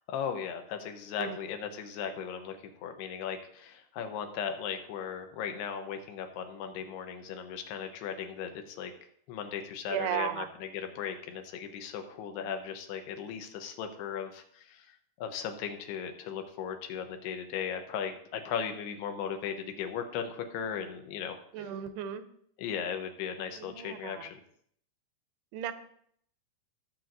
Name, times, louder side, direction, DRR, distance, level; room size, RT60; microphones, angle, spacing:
voice 1, 0.1-2.6 2.8-8.9 9.3-21.7 22.6-24.4, left 7 dB, 80° left, 6 dB, 3.0 m, -37 dB
voice 2, 9.9-10.5 21.5-22.2 23.6-24.2 25.5-25.7, right 10 dB, 80° right, 10 dB, 2.6 m, -35 dB
18.0 x 7.8 x 2.7 m, 0.66 s
omnidirectional pair, 4.7 m